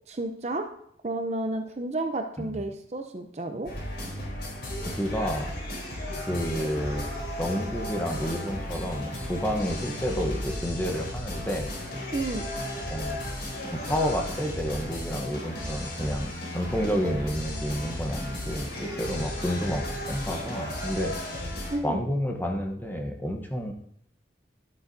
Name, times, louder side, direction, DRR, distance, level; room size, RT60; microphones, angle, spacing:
voice 1, 0.1-0.7 1.0-3.7 12.1-12.4 21.7-22.0, right 2 dB, 40° right, 5 dB, 0.7 m, -31 dB
sound 1, 3.6-21.8, left 1 dB, 85° left, 3.7 m, -34 dB
voice 2, 4.8-5.5 6.2-7.1 7.4-11.7 12.9-13.2 13.7-21.6 21.8-23.7, equal, 10° left, 3 dB, 1.0 m, -30 dB
12.0 x 8.0 x 2.7 m, 0.68 s
head